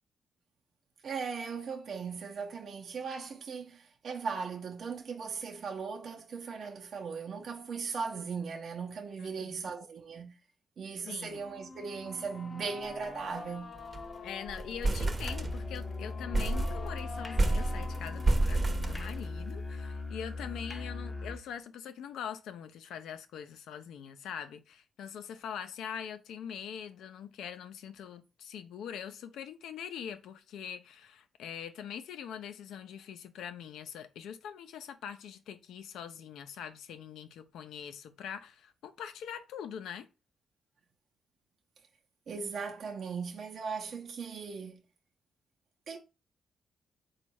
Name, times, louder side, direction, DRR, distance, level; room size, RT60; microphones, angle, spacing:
voice 1, 1.0-10.4 10.8-13.7 42.3-44.8 45.9-46.0, right 5 dB, 60° right, 0.7 m, -38 dB
voice 2, 9.2-9.7 11.0-11.4 14.2-40.1, left 8 dB, 85° left, 0.5 m, -43 dB
sound 1, 11.3-19.3, left 3 dB, 50° left, 0.8 m, -47 dB
sound 2, 12.8-13.0 13.3-13.4 13.7-14.1 14.5-15.9 16.3-19.6, right 2 dB, 30° right, 0.8 m, -30 dB
Musical instrument, 15.2-21.5, left 3 dB, 20° left, 0.6 m, -39 dB
4.1 x 2.4 x 4.6 m
cardioid pair, 75°, 0 cm